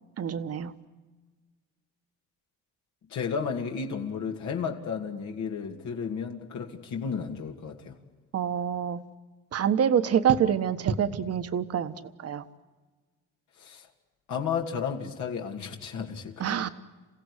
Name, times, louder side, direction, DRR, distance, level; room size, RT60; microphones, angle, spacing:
voice 1, 0.2-0.7 8.3-9.0 9.5-12.4 16.4-16.7, right 8 dB, 50° right, 10 dB, 1.5 m, -26 dB
voice 2, 3.1-8.0 13.6-13.9 14.3-16.5, left 6 dB, 65° left, 2 dB, 2.6 m, -33 dB
29.0 x 16.0 x 9.9 m, 1.4 s
cardioid pair, 115°, 31 cm